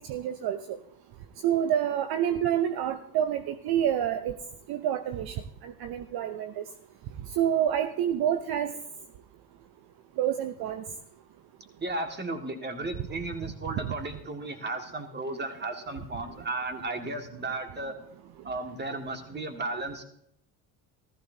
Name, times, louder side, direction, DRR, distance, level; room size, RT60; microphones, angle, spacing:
voice 1, 0.1-0.8 1.4-4.4 4.7-6.6 7.4-8.7 10.2-10.8, right 10 dB, 55° right, 9 dB, 0.8 m, -28 dB
voice 2, 11.8-18.0 18.4-20.0, right 2 dB, 25° right, 5 dB, 1.9 m, -34 dB
14.5 x 14.5 x 2.7 m, 0.72 s
supercardioid pair, 75°, 45 cm